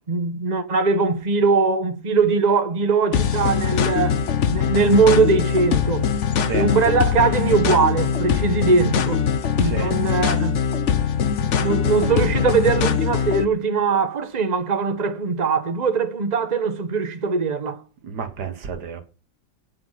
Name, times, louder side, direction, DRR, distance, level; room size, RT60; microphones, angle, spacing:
voice 1, 0.1-4.2 4.5-6.1 6.5-9.2 9.6-10.6 11.6-17.8, right 4 dB, 25° right, 1.4 m, -21 dB
sound 1, 3.1-13.4, left 7 dB, 50° left, 1.1 m, -22 dB
voice 2, 9.6-9.9 18.0-19.0, right 6 dB, 80° right, 2.0 m, -30 dB
11.5 x 7.7 x 5.7 m
omnidirectional pair, 1.7 m